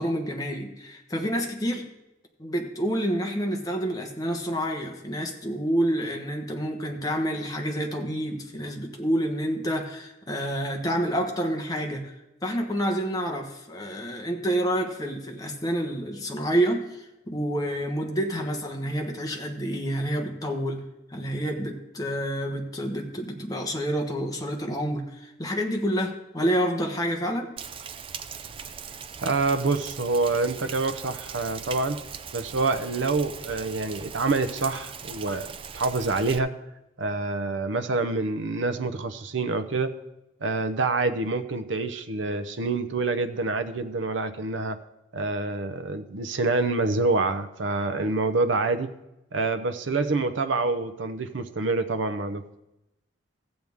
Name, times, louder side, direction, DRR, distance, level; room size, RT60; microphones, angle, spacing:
voice 1, 0.0-1.9 2.4-12.1 12.4-20.8 21.1-27.5, equal, 20° left, 2 dB, 1.2 m, -28 dB
Rain, 27.6-36.4, right 7 dB, 30° right, 0.4 m, -40 dB
voice 2, 29.2-32.0 32.3-36.5 37.0-39.9 40.4-44.8 45.1-48.9 49.3-52.4, right 3 dB, 85° right, 11 dB, 0.7 m, -27 dB
15.0 x 7.9 x 3.6 m, 0.92 s
head